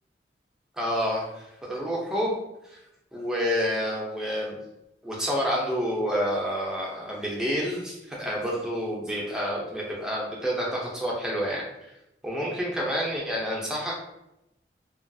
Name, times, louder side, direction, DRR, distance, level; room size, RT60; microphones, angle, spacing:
voice 1, 0.7-2.4 2.7-2.8 3.1-4.6 5.0-11.6 12.2-14.0, equal, 5° right, -4 dB, 0.5 m, -28 dB
2.8 x 2.3 x 2.6 m, 0.87 s
head